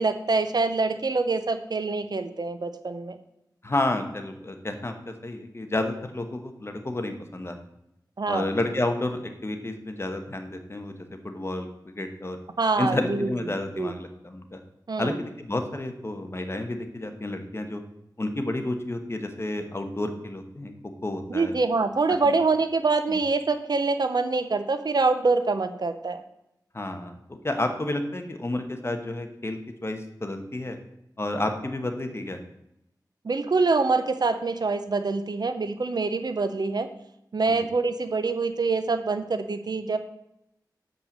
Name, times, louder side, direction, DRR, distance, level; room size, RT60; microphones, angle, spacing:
voice 1, 0.0-3.2 8.2-8.5 12.6-13.3 13.8-13.9 14.9-15.1 21.3-26.2 33.2-36.9 37.3-40.0, right 3 dB, 65° right, 9 dB, 0.7 m, -25 dB
voice 2, 3.6-7.6 8.3-11.7 11.9-12.4 12.8-14.6 15.0-17.8 18.2-20.7 21.0-21.6 22.3-22.4 23.1-23.2 26.7-30.8 31.2-32.4, left 2 dB, 35° left, 6 dB, 1.1 m, -30 dB
6.8 x 5.4 x 7.2 m, 0.82 s
wide cardioid pair, 85°, 8 cm